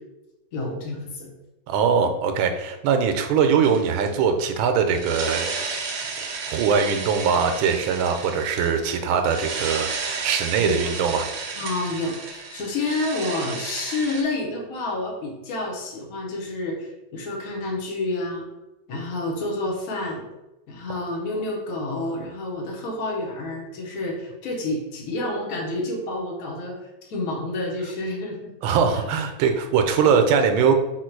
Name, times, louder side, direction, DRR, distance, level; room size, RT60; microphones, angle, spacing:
voice 1, 0.5-1.3 10.6-11.0 11.6-18.5 18.9-20.2 20.7-28.5 28.9-29.0 30.0-30.2, left 2 dB, 55° left, -2 dB, 1.2 m, -29 dB
voice 2, 1.7-5.5 5.9-11.3 28.6-30.7, right 6 dB, 85° right, 6 dB, 1.4 m, -22 dB
sound 1, 3.6-4.1 4.9-14.2, right 4 dB, 65° right, 0.9 m, -33 dB
4.0 x 2.4 x 4.5 m, 1.0 s
omnidirectional pair, 2.1 m